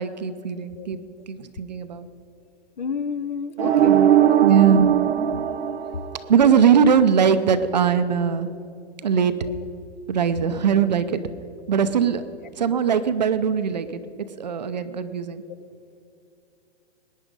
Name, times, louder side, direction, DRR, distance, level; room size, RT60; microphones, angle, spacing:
voice 1, 0.0-2.1 3.9-4.1 4.4-4.9 6.3-8.5 9.0-9.4 10.1-11.2 11.7-12.2 12.6-15.4, right 7 dB, 40° right, 11 dB, 0.6 m, -20 dB
voice 2, 2.8-4.4, left 6 dB, 45° left, 14 dB, 0.5 m, -31 dB
sound 1, 3.6-6.6, right 10 dB, 80° right, 0.9 m, -19 dB
20.5 x 9.9 x 5.2 m, 2.5 s
hypercardioid pair, 180°, 33 cm